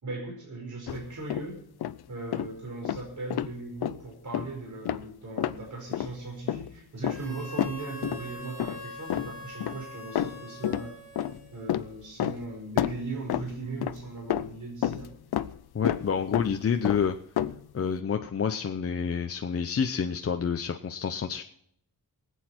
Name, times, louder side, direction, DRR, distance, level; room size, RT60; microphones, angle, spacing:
voice 1, 0.0-1.6 2.1-10.9 11.5-15.1, right 3 dB, 50° right, 0 dB, 5.0 m, -38 dB
sound 1, 0.9-1.5 1.8-2.0 2.3-2.5 2.8-3.5 3.8-4.0 4.3-4.5 4.8-5.1 5.4-5.6 5.9-6.1 6.5-6.7 7.0-8.3 8.6-8.8 9.1-9.8 10.1-10.9 11.2-12.5 12.8-14.0 14.3-15.6 15.8-16.1 16.3-16.6 16.8-17.6, left 11 dB, 85° left, 0.7 m, -30 dB
Harmonica, 7.0-11.9, equal, 85° right, 6.8 m, -44 dB
voice 2, 15.7-17.2 17.7-21.4, left 6 dB, 40° left, 5 dB, 0.7 m, -28 dB
23.5 x 8.4 x 4.4 m, 0.70 s
wide cardioid pair, 145°, 37 cm